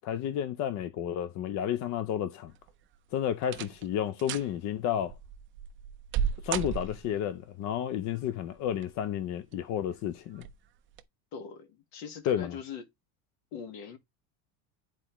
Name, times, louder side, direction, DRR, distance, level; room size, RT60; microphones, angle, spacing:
voice 1, 0.0-2.5 3.1-5.1 6.4-10.5 12.3-12.5, left 10 dB, 40° left, 0.5 m, -31 dB
sound 1, 2.5-2.9 3.4-3.9 4.2-4.5 5.1-7.3 8.5-9.1 9.5-9.6 10.3-10.6 10.9-11.0, right 8 dB, 30° right, 0.4 m, -34 dB
voice 2, 11.3-12.8 13.5-14.0, left 6 dB, 55° left, 1.6 m, -41 dB
9.9 x 4.4 x 3.0 m
cardioid pair, 155°, 46 cm